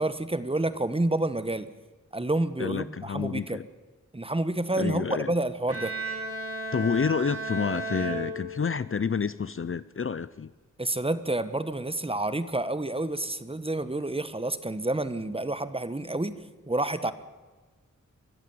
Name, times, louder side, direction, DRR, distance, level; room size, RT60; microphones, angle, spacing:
voice 1, 0.0-1.7 2.1-3.6 4.1-5.9 10.8-16.4 16.7-17.1, right 2 dB, 20° right, 14 dB, 1.3 m, -29 dB
voice 2, 2.6-3.6 4.8-5.3 6.7-10.5, left 6 dB, 45° left, 17 dB, 0.6 m, -29 dB
Bowed string instrument, 5.7-9.0, right 2 dB, 50° right, 4.5 m, -34 dB
23.5 x 14.5 x 9.5 m, 1.3 s
wide cardioid pair, 105°, 31 cm